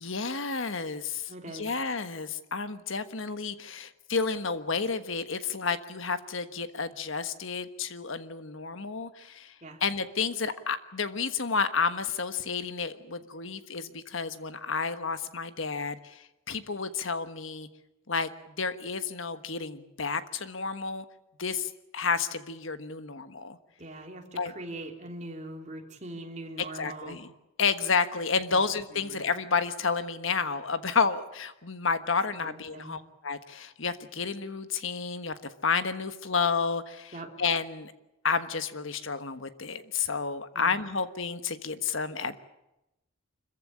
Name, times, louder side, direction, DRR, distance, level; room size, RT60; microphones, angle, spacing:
voice 1, 0.0-9.5 9.8-17.7 18.1-18.3 18.6-21.0 21.4-23.6 24.4-24.5 26.6-27.3 27.6-37.9 38.2-42.4, left 5 dB, 70° left, 11 dB, 1.4 m, -31 dB
voice 2, 1.3-1.6 9.6-9.8 23.8-27.2 28.5-28.6 28.9-29.2 32.4-33.0 37.1-37.3 40.5-40.7, right 1 dB, 35° right, 2 dB, 3.4 m, -42 dB
26.0 x 15.0 x 10.0 m, 0.90 s
head